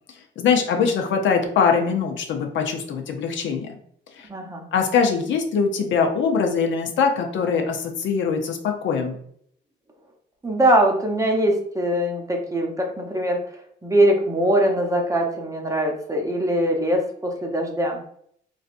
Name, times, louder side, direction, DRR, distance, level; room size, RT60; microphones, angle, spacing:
voice 1, 0.4-3.7 4.1-4.3 4.7-9.2, left 6 dB, 70° left, 3 dB, 0.6 m, -22 dB
voice 2, 4.3-4.7 10.4-13.4 13.8-18.0, right 1 dB, 15° right, 1 dB, 0.7 m, -22 dB
3.1 x 2.6 x 2.5 m, 0.65 s
cardioid pair, 90°, 20 cm